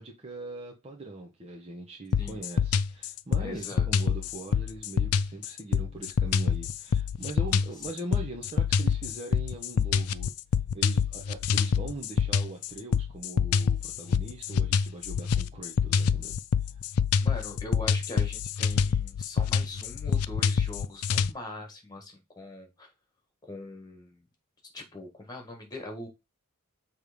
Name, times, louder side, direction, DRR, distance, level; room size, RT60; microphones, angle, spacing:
voice 1, 0.0-10.3 10.7-16.4, right 2 dB, 30° right, 1.1 m, -41 dB
sound 1, 2.1-21.3, left 6 dB, 75° left, 0.4 m, -26 dB
voice 2, 3.4-3.9 17.2-22.9 23.4-24.2 24.7-26.1, left 2 dB, 20° left, 1.6 m, -42 dB
7.4 x 3.3 x 5.1 m
head